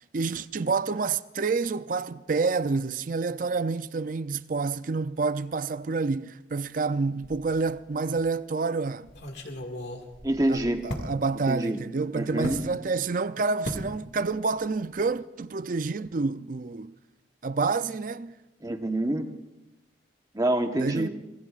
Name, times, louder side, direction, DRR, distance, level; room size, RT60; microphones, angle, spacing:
voice 1, 0.1-9.1 10.5-16.9 17.4-18.3 20.8-21.1, right 4 dB, 45° right, 0.4 m, -28 dB
sound 1, 7.2-7.8 8.2-8.3 9.1-11.1 12.4-12.7 13.6-13.9 14.2-14.6 14.8-15.0, left 1 dB, 65° left, 2.0 m, -36 dB
voice 2, 10.2-10.8 11.5-11.8 12.1-12.6 18.6-19.2 20.3-21.1, right 1 dB, 20° right, 1.1 m, -26 dB
26.5 x 19.5 x 2.5 m
head